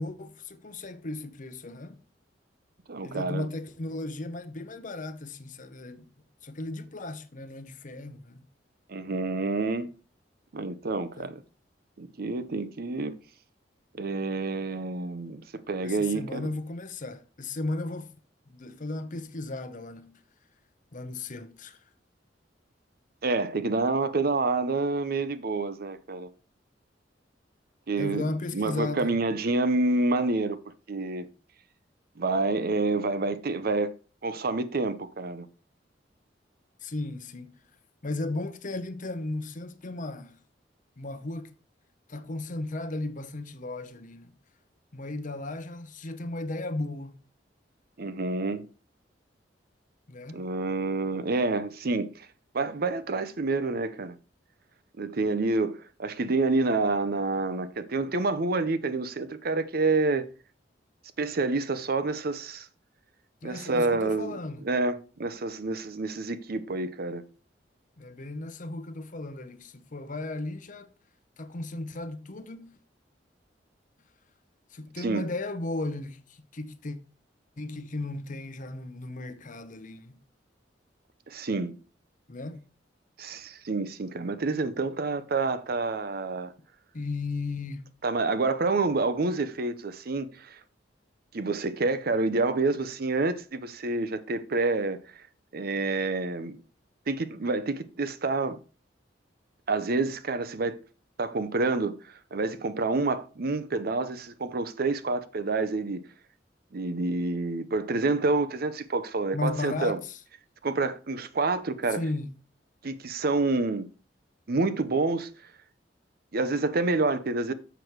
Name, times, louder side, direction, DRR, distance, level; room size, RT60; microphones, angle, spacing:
voice 1, 0.0-2.0 3.0-6.0 6.4-8.4 11.2-11.3 15.8-18.1 18.5-20.2 20.9-21.8 28.0-29.1 36.8-37.6 38.0-40.4 41.0-41.5 42.1-44.3 44.9-47.2 50.1-50.4 63.4-64.7 68.0-70.9 71.4-72.8 74.7-77.0 77.6-80.2 82.3-82.6 86.9-87.8 109.3-110.2 111.9-112.3, left 2 dB, 45° left, 0.8 m, -35 dB
voice 2, 2.9-3.5 8.9-9.9 10.5-11.4 12.0-13.2 13.9-16.5 23.2-26.3 27.9-28.3 28.5-30.6 30.9-31.3 32.2-33.9 34.2-35.5 48.0-48.7 50.3-52.3 52.5-54.2 55.0-60.2 61.2-62.7 63.4-64.3 64.6-67.2 75.0-75.3 81.3-81.8 83.2-86.5 88.0-90.6 91.3-95.3 95.5-96.6 97.1-98.6 99.7-100.8 101.2-106.0 106.7-110.0 110.6-112.0 112.8-113.9 114.5-115.3 116.3-117.5, right 3 dB, 55° right, 0.7 m, -28 dB
7.0 x 6.2 x 4.6 m
head